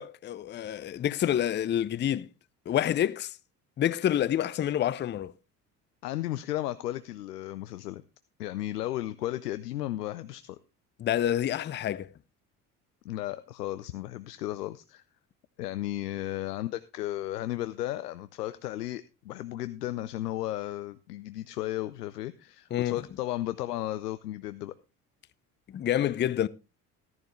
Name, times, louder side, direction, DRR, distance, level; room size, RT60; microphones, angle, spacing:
voice 1, 0.0-2.3 2.7-3.4 3.8-5.3 11.0-12.1 22.7-23.0 25.7-26.5, left 11 dB, 25° left, 0.5 m, -28 dB
voice 2, 6.0-8.0 8.4-10.6 13.0-15.0 15.6-24.7, left 14 dB, 85° left, 0.6 m, -34 dB
14.0 x 10.5 x 3.1 m
figure-of-eight pair, 55°, 46 cm